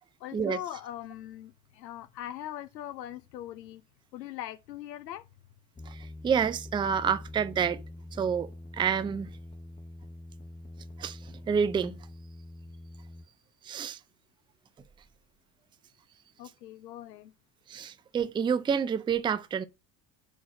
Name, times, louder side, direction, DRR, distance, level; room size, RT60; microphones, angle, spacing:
voice 1, 0.2-3.8 4.1-5.2 16.4-17.3, left 12 dB, 85° left, 0.6 m, -41 dB
sound 1, 5.8-13.2, left 1 dB, 15° left, 0.9 m, -45 dB
voice 2, 5.9-7.8 8.1-9.3 11.0-12.0 13.6-14.0 17.7-19.6, right 7 dB, 10° right, 0.4 m, -29 dB
5.1 x 4.2 x 5.7 m
hypercardioid pair, 70°, 48 cm